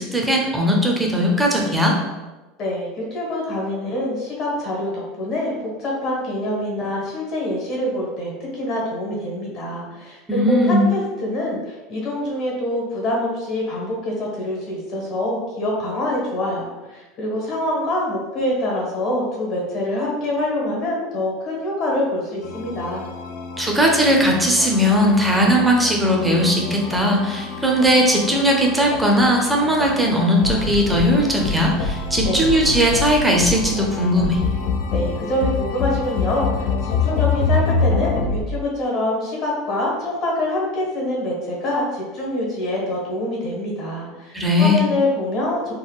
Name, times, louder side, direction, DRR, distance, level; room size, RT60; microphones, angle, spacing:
voice 1, 0.0-1.9 10.3-10.8 23.6-34.4 44.3-44.8, equal, 5° right, -1 dB, 0.5 m, -18 dB
voice 2, 2.6-23.0 32.2-32.5 34.9-45.7, left 1 dB, 45° left, -2 dB, 1.1 m, -25 dB
sound 1, 22.4-38.4, left 4 dB, 75° left, 0.3 m, -26 dB
3.6 x 2.1 x 2.3 m, 1.2 s
supercardioid pair, 135°, 0 cm